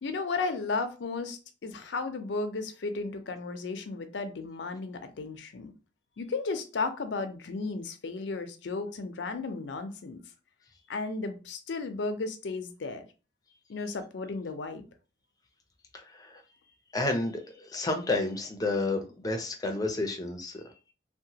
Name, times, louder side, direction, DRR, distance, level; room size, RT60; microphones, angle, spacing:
voice 1, 0.0-5.7 6.2-10.2 10.9-13.0 13.7-14.8, left 3 dB, 85° left, 0.5 m, -34 dB
voice 2, 15.9-16.4 16.9-20.7, left 2 dB, 20° left, 0.5 m, -31 dB
2.8 x 2.1 x 2.7 m
head